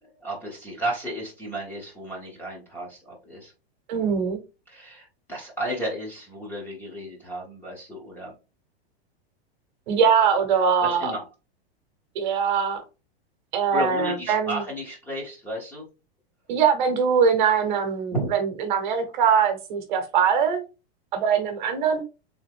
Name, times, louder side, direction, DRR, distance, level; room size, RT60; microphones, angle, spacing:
voice 1, 0.0-3.5 4.7-8.3 10.8-11.2 13.7-15.8 18.1-18.3, right 1 dB, 5° left, -3 dB, 0.9 m, -33 dB
voice 2, 3.9-4.4 9.9-11.1 12.1-12.8 13.5-14.6 16.5-20.6 21.1-22.0, right 6 dB, 50° right, 7 dB, 1.0 m, -22 dB
3.6 x 3.5 x 3.5 m, 0.29 s
supercardioid pair, 175°, 31 cm